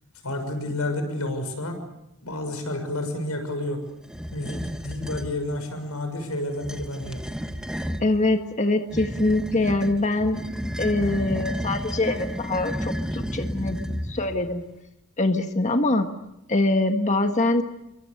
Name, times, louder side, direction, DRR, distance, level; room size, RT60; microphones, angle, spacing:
voice 1, 0.2-1.8 2.2-3.8 4.3-7.2, left 1 dB, 85° left, 7 dB, 6.5 m, -30 dB
sound 1, 4.1-5.3 6.5-8.1 8.9-14.4, equal, 5° right, 1.5 m, -32 dB
voice 2, 8.0-10.4 10.8-14.6 15.2-16.1 16.5-17.6, left 2 dB, 35° left, 6 dB, 1.6 m, -24 dB
29.5 x 24.0 x 6.7 m, 0.87 s
head